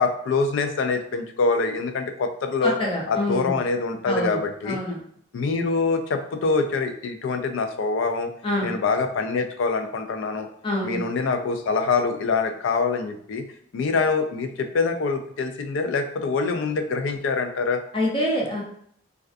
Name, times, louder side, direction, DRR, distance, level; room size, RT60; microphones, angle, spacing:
voice 1, 0.0-2.8 3.1-4.8 5.3-8.3 8.6-10.5 10.8-13.4 13.7-17.8, left 4 dB, 80° left, 6 dB, 0.3 m, -25 dB
voice 2, 2.6-3.6 4.0-5.0 8.4-8.7 10.6-11.0 17.9-18.6, left 1 dB, 25° left, -3 dB, 0.6 m, -26 dB
2.3 x 2.3 x 2.4 m, 0.65 s
head